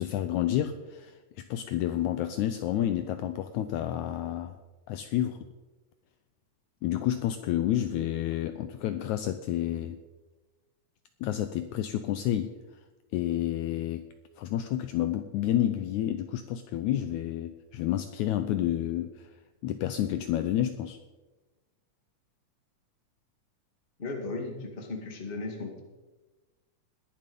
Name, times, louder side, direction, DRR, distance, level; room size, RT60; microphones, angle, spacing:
voice 1, 0.0-4.6 4.9-5.5 6.8-10.0 11.2-12.5 13.1-14.0 14.4-19.3 19.6-21.0, left 12 dB, 80° left, 9 dB, 1.8 m, -30 dB
voice 2, 24.0-25.8, left 3 dB, 20° left, 2 dB, 1.5 m, -36 dB
20.5 x 7.4 x 5.3 m, 1.2 s
omnidirectional pair, 3.8 m